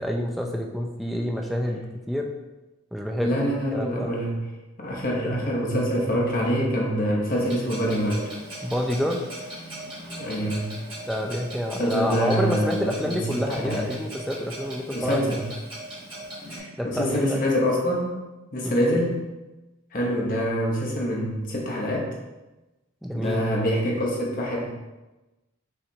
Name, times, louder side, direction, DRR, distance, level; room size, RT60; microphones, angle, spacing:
voice 1, 0.0-2.3 2.9-3.4 3.7-4.2 8.6-9.2 11.1-15.4 16.8-17.4 18.6-18.8 23.0-23.4, equal, ahead, 0 dB, 0.3 m, -28 dB
voice 2, 3.2-4.4 4.8-8.3 10.2-10.7 11.8-13.9 14.9-15.4 16.5-18.2 18.5-19.2 19.9-22.1 23.1-24.7, equal, 40° left, -2 dB, 0.9 m, -25 dB
Clock, 7.4-16.6, right 1 dB, 25° right, 1.4 m, -39 dB
5.8 x 3.2 x 2.8 m, 1.1 s
head